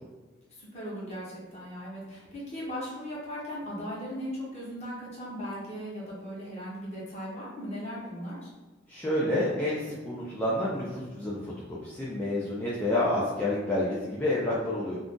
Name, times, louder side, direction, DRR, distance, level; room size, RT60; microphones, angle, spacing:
voice 1, 0.5-8.5, equal, 35° left, -6 dB, 1.0 m, -38 dB
voice 2, 8.9-15.0, left 1 dB, 10° left, -8 dB, 0.4 m, -29 dB
2.5 x 2.3 x 3.6 m, 1.2 s
head